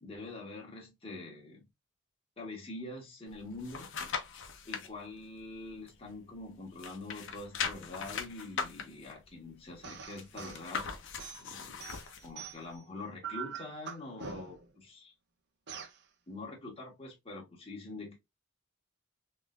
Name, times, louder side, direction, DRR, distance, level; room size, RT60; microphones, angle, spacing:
voice 1, 0.0-1.7 2.4-3.9 4.7-10.9 11.4-15.1 16.3-18.2, left 2 dB, 30° left, 1.4 m, -45 dB
sound 1, 3.3-4.9 5.4-6.5 6.7-12.3 12.7-12.8, left 6 dB, 65° left, 0.8 m, -40 dB
sound 2, 9.8-10.6 11.2-12.8 13.2-14.7 15.7-16.0, right 7 dB, 60° right, 0.7 m, -44 dB
3.6 x 3.2 x 2.4 m
head